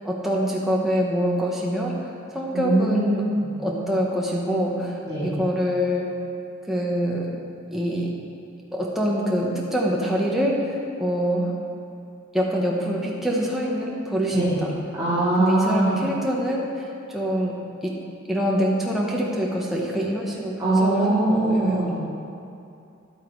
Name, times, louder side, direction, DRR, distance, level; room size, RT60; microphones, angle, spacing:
voice 1, 0.0-3.2 3.6-6.1 6.6-7.3 7.7-8.1 8.7-11.6 12.3-14.7 15.4-18.0 18.3-21.9, equal, ahead, -4 dB, 1.1 m, -25 dB
voice 2, 2.5-3.2 5.0-5.3 14.3-14.6 15.0-15.9 20.6-21.9, right 2 dB, 20° right, -14 dB, 3.1 m, -22 dB
11.5 x 9.3 x 4.6 m, 2.6 s
head